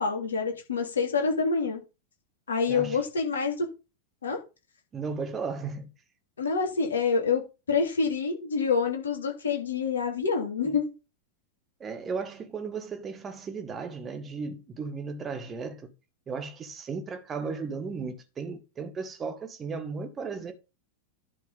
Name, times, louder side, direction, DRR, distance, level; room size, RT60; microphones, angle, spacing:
voice 1, 0.0-1.8 2.5-3.7 4.2-4.4 6.4-10.9, left 5 dB, 70° left, 3.1 m, -27 dB
voice 2, 4.9-5.9 11.8-15.9 16.3-20.5, right 5 dB, 20° right, 1.7 m, -35 dB
11.0 x 4.7 x 5.3 m
figure-of-eight pair, 90°, 0 cm